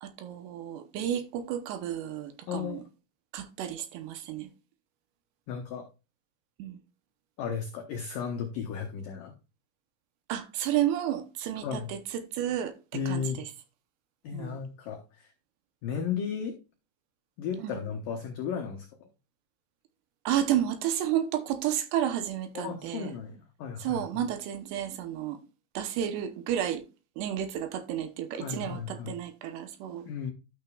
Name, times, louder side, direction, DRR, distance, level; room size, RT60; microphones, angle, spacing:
voice 1, 0.0-2.8 3.3-4.5 6.6-6.8 10.3-12.7 13.1-13.5 14.3-14.6 17.6-17.8 20.3-23.1 23.8-25.4 25.7-26.8 27.2-30.1, right 11 dB, 75° right, 2.8 m, -31 dB
voice 2, 2.5-2.8 5.5-5.9 7.4-9.3 11.6-11.9 12.9-13.4 14.2-15.3 15.8-16.6 17.4-18.9 22.5-24.3 28.3-29.2 30.1-30.3, left 7 dB, 75° left, 2.0 m, -34 dB
12.5 x 6.7 x 2.3 m
omnidirectional pair, 5.3 m